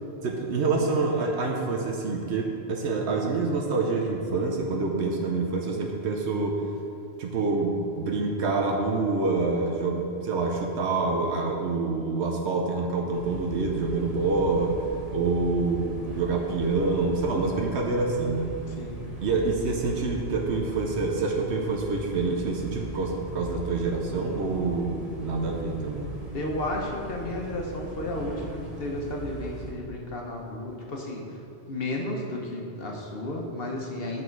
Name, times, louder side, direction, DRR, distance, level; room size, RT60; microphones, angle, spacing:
voice 1, 0.2-6.6 7.2-14.8 15.1-15.9 16.1-18.5 19.2-26.1, right 3 dB, 80° right, 1 dB, 1.1 m, -27 dB
sound 1, 13.1-29.7, right 2 dB, 35° right, 2.0 m, -39 dB
voice 2, 18.7-19.0 26.3-31.4 31.7-34.2, left 1 dB, 60° left, 0 dB, 1.2 m, -33 dB
8.7 x 6.2 x 4.6 m, 2.7 s
omnidirectional pair, 1.1 m